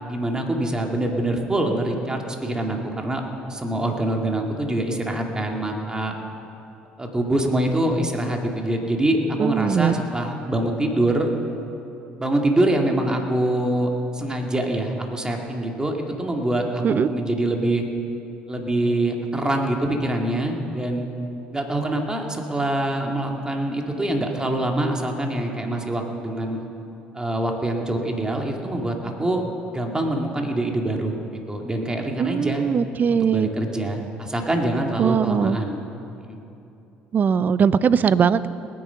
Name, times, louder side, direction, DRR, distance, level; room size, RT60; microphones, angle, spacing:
voice 1, 0.1-3.2 3.5-6.1 7.0-11.3 12.2-17.8 18.5-21.1 21.5-26.6 27.1-29.4 29.7-31.1 31.5-32.6 33.1-35.8 36.2-36.4, right 1 dB, 20° right, 2 dB, 2.2 m, -24 dB
voice 2, 9.4-10.0 16.8-17.1 32.2-33.5 35.0-35.6 37.1-38.5, right 7 dB, 45° right, 16 dB, 0.5 m, -20 dB
20.0 x 9.5 x 5.8 m, 2.8 s
supercardioid pair, 70°, 4 cm